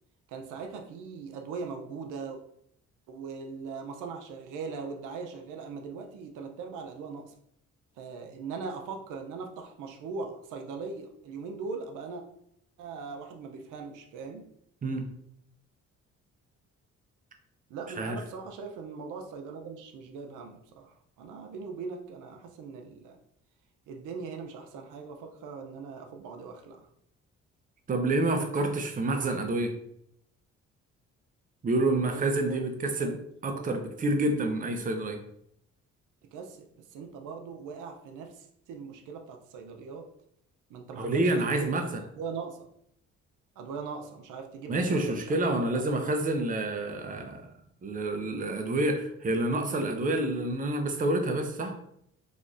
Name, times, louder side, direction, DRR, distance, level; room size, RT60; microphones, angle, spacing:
voice 1, 0.3-2.4 3.1-7.3 8.0-12.2 12.8-14.5 17.7-23.2 23.9-26.9 32.1-32.7 33.0-33.2 33.5-33.7 36.3-36.6 36.9-40.1 40.7-41.7 42.2-42.7 43.6-46.1, right 4 dB, 85° right, 4 dB, 0.6 m, -40 dB
voice 2, 27.9-29.7 31.6-35.2 41.0-42.0 44.7-47.5 47.8-51.8, right 2 dB, 30° right, 5 dB, 0.6 m, -28 dB
4.0 x 3.0 x 2.5 m, 0.71 s
cardioid pair, 90°, 30 cm